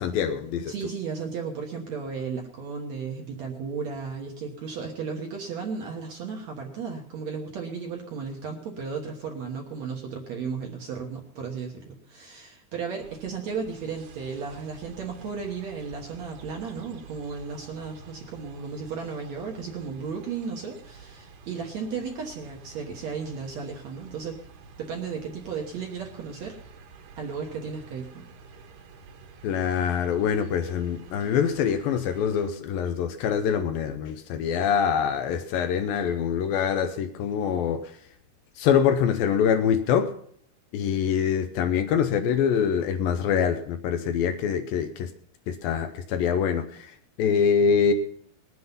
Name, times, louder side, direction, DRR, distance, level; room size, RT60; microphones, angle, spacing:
voice 1, 0.0-0.7 29.4-38.0 38.6-40.1 40.7-45.1 45.5-47.9, left 7 dB, 75° left, 2.2 m, -24 dB
voice 2, 0.7-24.4 24.8-26.6 27.2-28.3, right 5 dB, 60° right, 2.0 m, -34 dB
sound 1, 13.0-32.5, right 4 dB, 90° right, 3.5 m, -49 dB
20.5 x 7.9 x 5.5 m
omnidirectional pair, 4.5 m